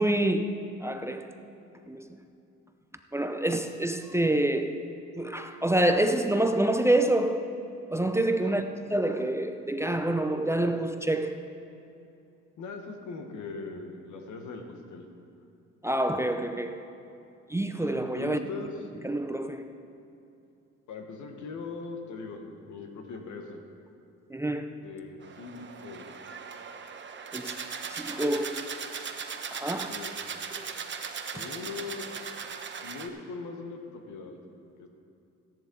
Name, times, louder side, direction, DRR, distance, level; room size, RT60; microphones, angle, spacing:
voice 1, 0.0-1.3 1.9-2.1 3.1-4.8 5.2-7.5 7.9-11.4 15.8-16.9 17.5-18.4 19.0-19.8 24.3-24.7 27.3-27.6 27.9-28.7 29.5-30.0 30.6-30.7 31.3-31.5, right 1 dB, 10° right, 0.5 m, -27 dB
voice 2, 12.6-15.0 18.2-18.8 20.9-23.6 24.8-26.0 29.9-30.2 31.3-32.1 32.8-34.4 34.8-34.9, left 4 dB, 75° left, 1.4 m, -40 dB
sound 1, 25.2-33.1, right 6 dB, 40° right, 0.9 m, -38 dB
13.5 x 10.5 x 3.9 m
cardioid pair, 90°, 30 cm